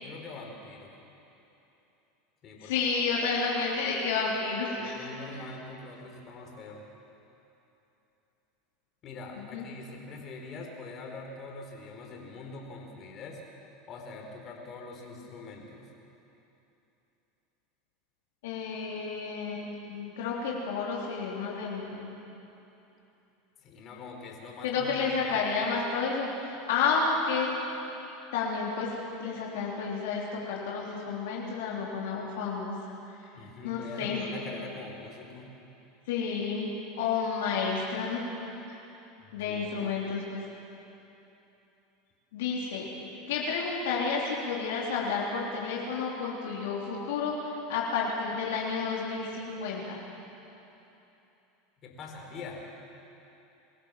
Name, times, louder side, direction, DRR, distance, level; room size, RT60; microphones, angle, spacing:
voice 1, 0.0-0.9 2.4-2.7 4.8-6.9 9.0-13.4 13.9-15.9 23.6-25.5 33.3-35.5 39.2-40.0 51.8-52.6, left 3 dB, 45° left, 1 dB, 4.2 m, -43 dB
voice 2, 2.6-5.1 9.5-9.7 18.4-22.1 24.6-27.6 28.3-28.9 29.2-32.7 33.6-34.2 36.1-36.7 37.0-38.3 38.7-38.8 39.3-40.4 42.3-42.9 43.3-50.0, left 5 dB, 75° left, -4 dB, 3.5 m, -31 dB
24.0 x 15.5 x 7.5 m, 3.0 s
hypercardioid pair, 95°, 0 cm